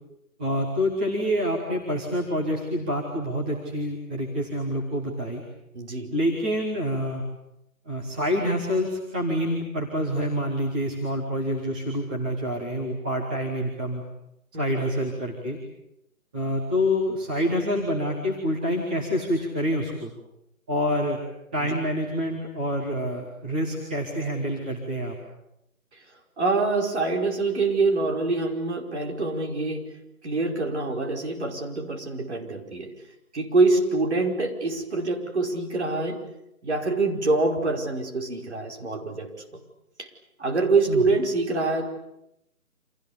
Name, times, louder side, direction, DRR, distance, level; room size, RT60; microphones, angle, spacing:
voice 1, 0.4-5.4 6.1-7.2 7.8-14.0 14.5-15.6 16.3-20.1 20.7-21.2 21.5-25.2 40.9-41.0, equal, 5° right, -5 dB, 1.2 m, -27 dB
voice 2, 5.7-6.2 14.5-14.8 21.6-21.7 26.4-29.9 30.2-32.9 33.3-36.2 36.6-39.3 40.0-40.1 40.4-41.9, right 3 dB, 50° right, 2 dB, 5.2 m, -25 dB
30.0 x 27.0 x 7.1 m, 0.84 s
figure-of-eight pair, 165°, 44 cm